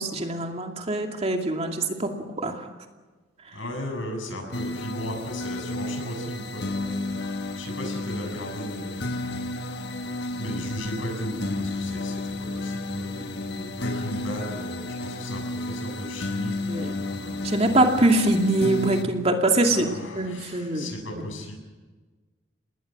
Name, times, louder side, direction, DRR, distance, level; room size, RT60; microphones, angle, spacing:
voice 1, 0.0-2.1 2.4-2.6 16.7-16.9 17.4-19.9 20.1-20.8, right 2 dB, 35° right, 3 dB, 2.5 m, -23 dB
voice 2, 3.5-9.4 10.3-17.6 19.6-21.5, left 1 dB, 85° left, 3 dB, 7.3 m, -36 dB
sound 1, 4.5-19.0, left 2 dB, 60° left, 1.5 m, -32 dB
27.5 x 20.0 x 6.2 m, 1.3 s
head